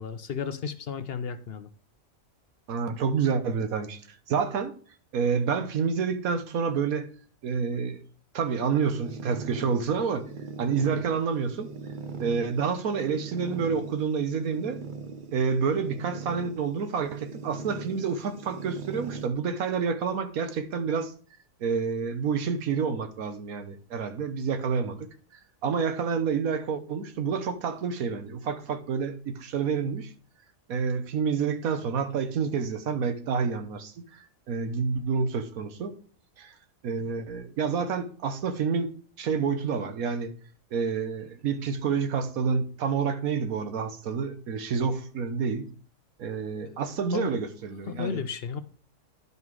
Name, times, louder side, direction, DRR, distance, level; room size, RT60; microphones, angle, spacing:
voice 1, 0.0-1.7 46.6-46.8 47.1-47.4 47.9-48.6, left 6 dB, 55° left, 0.7 m, -33 dB
voice 2, 2.7-4.0 4.3-4.7 5.1-7.1 7.4-8.0 8.3-10.2 10.6-11.7 12.2-14.8 15.3-21.1 21.6-25.1 25.6-30.1 30.7-35.9 36.4-36.5 36.8-38.9 39.2-40.3 40.7-45.7 46.2-48.2, right 6 dB, 90° right, 1.4 m, -28 dB
sound 1, 8.8-19.3, right 5 dB, 50° right, 0.6 m, -40 dB
10.5 x 5.5 x 4.7 m
omnidirectional pair, 1.4 m